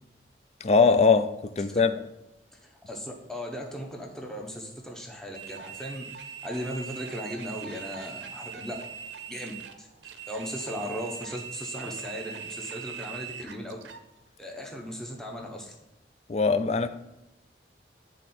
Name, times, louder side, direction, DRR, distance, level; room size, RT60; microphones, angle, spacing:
voice 1, 0.6-1.9 16.3-16.9, left 4 dB, 35° left, 11 dB, 0.4 m, -21 dB
voice 2, 2.5-8.8 9.3-13.8 14.4-15.8, equal, 5° left, 0 dB, 0.8 m, -37 dB
sound 1, 5.3-14.0, right 7 dB, 85° right, 0.6 m, -41 dB
9.8 x 3.6 x 4.3 m, 0.92 s
head